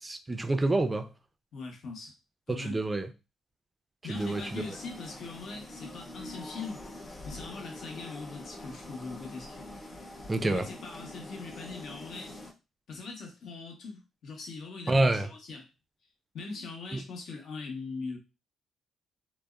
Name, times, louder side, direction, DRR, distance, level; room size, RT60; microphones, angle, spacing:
voice 1, 0.0-1.1 2.6-3.1 4.1-4.6 10.3-10.6 14.9-15.3, right 2 dB, 20° right, 0.4 m, -27 dB
voice 2, 1.5-2.1 2.5-2.8 4.0-6.8 7.2-9.6 10.4-12.3 12.9-15.7 16.3-18.2, left 4 dB, 65° left, 0.8 m, -41 dB
sound 1, 4.1-12.5, left 1 dB, 35° left, 0.8 m, -45 dB
2.7 x 2.0 x 2.3 m
cardioid pair, 90°, 0 cm